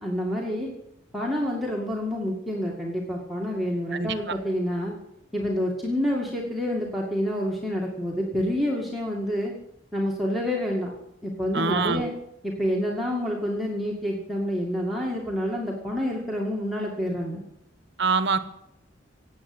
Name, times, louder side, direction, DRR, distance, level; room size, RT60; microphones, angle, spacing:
voice 1, 0.0-0.7 1.1-4.9 5.3-9.5 9.9-10.9 11.2-12.1 12.4-17.4, equal, ahead, -3 dB, 2.1 m, -28 dB
voice 2, 3.9-4.4 11.5-12.1 18.0-18.4, right 4 dB, 65° right, 12 dB, 1.2 m, -25 dB
17.5 x 8.4 x 8.0 m, 0.79 s
head